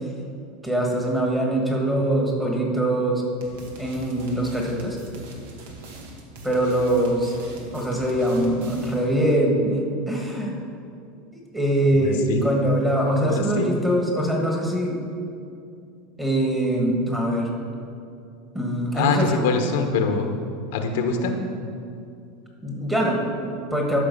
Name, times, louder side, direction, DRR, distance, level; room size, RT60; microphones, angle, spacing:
voice 1, 0.6-3.2 3.8-5.0 6.4-7.3 7.7-9.7 10.1-10.6 11.3-15.0 16.2-17.5 18.5-19.4 22.6-24.0, right 1 dB, 5° right, -1 dB, 1.6 m, -23 dB
sound 1, 3.4-9.1, right 2 dB, 75° right, 1.7 m, -41 dB
voice 2, 11.9-12.4 13.2-13.7 18.9-20.3 20.7-21.4, left 4 dB, 75° left, 5 dB, 1.0 m, -24 dB
12.5 x 5.5 x 5.4 m, 2.5 s
supercardioid pair, 150°, 0 cm